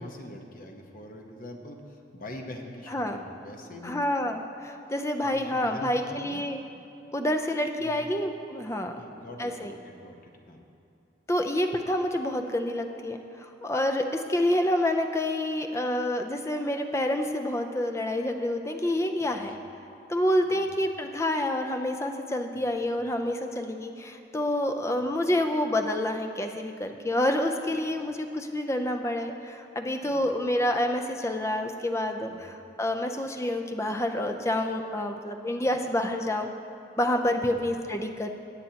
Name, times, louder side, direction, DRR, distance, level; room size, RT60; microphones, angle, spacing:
voice 1, 0.0-4.0 5.2-6.4 7.8-8.1 8.9-10.2 10.5-10.6 19.2-19.6 20.5-20.7 22.5-22.7 30.0-30.3 32.3-32.4 37.3-37.6, left 1 dB, 45° left, 2 dB, 0.9 m, -43 dB
voice 2, 2.9-3.2 3.8-6.6 7.1-9.0 9.4-9.7 11.3-19.6 20.1-36.5 37.0-38.3, left 1 dB, 15° left, 5 dB, 0.5 m, -28 dB
18.0 x 8.5 x 2.9 m, 2.6 s
head